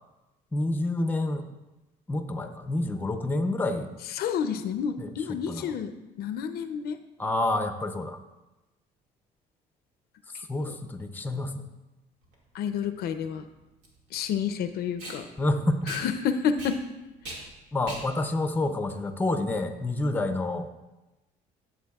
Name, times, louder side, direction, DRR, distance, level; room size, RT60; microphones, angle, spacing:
voice 1, 0.5-1.5 2.1-3.9 5.0-5.1 5.5-5.8 7.2-8.2 10.5-11.6 15.4-16.0 17.7-20.7, left 2 dB, 10° left, 8 dB, 0.6 m, -28 dB
voice 2, 4.1-5.9 6.2-7.0 10.6-10.7 12.5-13.5 14.1-15.3 15.9-16.8, left 7 dB, 70° left, 9 dB, 0.5 m, -29 dB
Packing tape duct tape, 12.2-19.7, right 2 dB, 85° right, 2.0 m, -43 dB
11.5 x 7.1 x 2.3 m, 1.0 s
cardioid pair, 110°, 17 cm